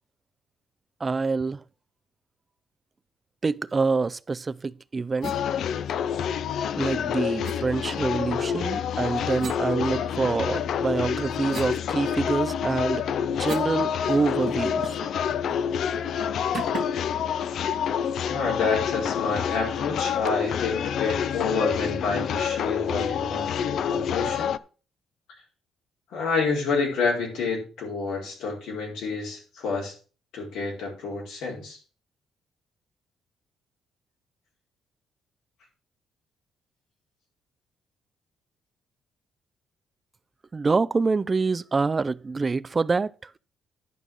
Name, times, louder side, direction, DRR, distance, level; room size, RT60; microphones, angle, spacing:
voice 1, 1.0-1.6 3.4-5.3 6.8-15.0 40.5-43.3, right 4 dB, 20° right, 0.4 m, -26 dB
sound 1, 5.2-24.6, left 8 dB, 55° left, 0.5 m, -28 dB
sound 2, 5.2-5.4 7.4-7.6 9.4-10.4 10.9-13.8 14.1-14.2 14.5-15.1 15.5-15.7 16.5-17.1, right 6 dB, 40° right, 1.3 m, -40 dB
voice 2, 18.3-24.6 26.1-29.9 30.3-31.8, left 4 dB, 80° left, 4.6 m, -29 dB
11.0 x 5.3 x 6.2 m
cardioid pair, 175°, 0 cm